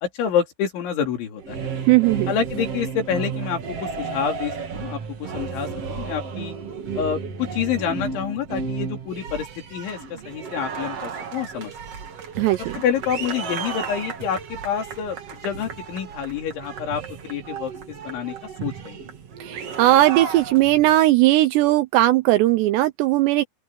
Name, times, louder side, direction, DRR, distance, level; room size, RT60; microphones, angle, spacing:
voice 1, 0.0-1.7 2.3-6.6 6.9-11.7 12.7-18.4 18.6-19.1, left 8 dB, 70° left, 5.7 m, -28 dB
sound 1, 1.4-20.9, right 5 dB, 45° right, 2.2 m, -33 dB
voice 2, 1.9-2.3 12.4-12.7 19.4-23.4, right 16 dB, 80° right, 2.5 m, -18 dB
open air
omnidirectional pair, 5.6 m